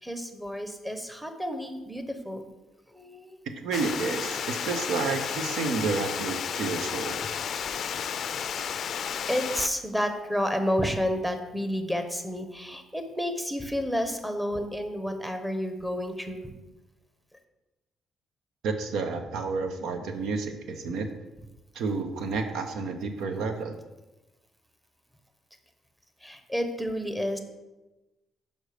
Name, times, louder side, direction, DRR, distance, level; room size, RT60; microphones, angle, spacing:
voice 1, 0.0-2.4 2.9-3.4 9.3-16.5 26.2-27.4, equal, 5° right, 6 dB, 0.9 m, -30 dB
voice 2, 3.6-7.2 18.6-21.1 21.7-23.8, right 4 dB, 80° right, 7 dB, 0.7 m, -30 dB
Water, 3.7-9.7, left 7 dB, 60° left, 0.4 m, -32 dB
6.4 x 5.3 x 5.0 m, 1.1 s
cardioid pair, 90°, 0 cm